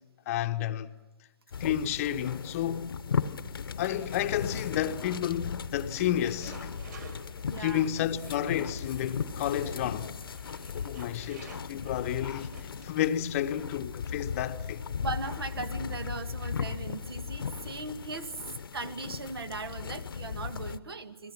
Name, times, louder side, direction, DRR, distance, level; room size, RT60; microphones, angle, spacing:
voice 1, 0.3-0.9 1.6-3.0 3.8-6.7 7.6-10.1 10.7-12.5 12.8-14.9, left 11 dB, 35° left, 0.9 m, -31 dB
sound 1, 1.5-20.8, left 6 dB, 65° left, 0.9 m, -37 dB
sound 2, 3.6-13.3, right 5 dB, 50° right, 4.4 m, -53 dB
voice 2, 7.5-7.9 15.0-18.4 18.7-21.3, right 3 dB, 70° right, 1.8 m, -38 dB
30.0 x 21.5 x 6.1 m
figure-of-eight pair, 130°, 13 cm